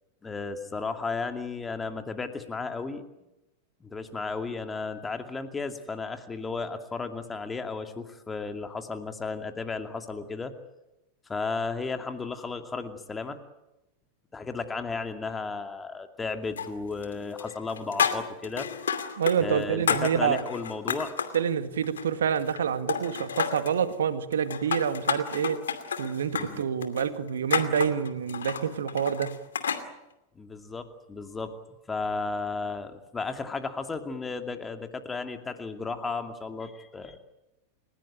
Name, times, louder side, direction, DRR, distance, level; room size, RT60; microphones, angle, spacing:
voice 1, 0.2-3.0 3.8-10.5 11.3-13.4 14.3-18.7 19.4-21.1 26.3-26.6 30.4-31.6 31.9-37.2, left 4 dB, 15° left, 7 dB, 2.5 m, -34 dB
sound 1, 16.6-17.1 17.4-19.4 19.6-21.4 21.8-22.6 22.9-23.8 24.3-29.8, left 7 dB, 65° left, 2.5 m, -31 dB
voice 2, 19.2-20.4 21.3-25.6 26.0-29.3, right 7 dB, 65° right, 10 dB, 2.0 m, -27 dB
30.0 x 16.5 x 9.1 m, 0.94 s
figure-of-eight pair, 90°, 0 cm